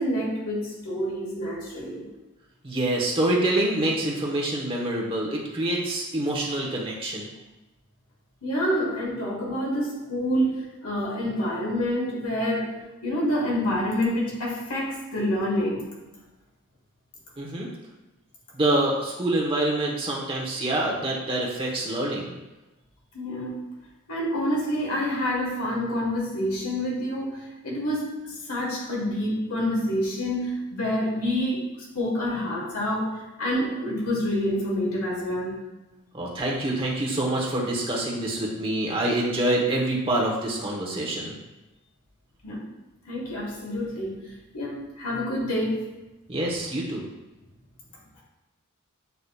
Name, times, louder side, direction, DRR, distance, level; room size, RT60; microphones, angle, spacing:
voice 1, 0.0-2.1 8.4-15.9 23.1-23.6 24.1-35.6 42.4-42.7 43.1-44.2 44.5-45.8, equal, 85° left, -4 dB, 1.4 m, -27 dB
voice 2, 2.6-7.3 17.4-17.7 18.5-22.3 36.1-41.3 46.3-47.0, right 1 dB, 25° right, -3 dB, 0.9 m, -26 dB
8.0 x 2.8 x 2.3 m, 1.1 s
head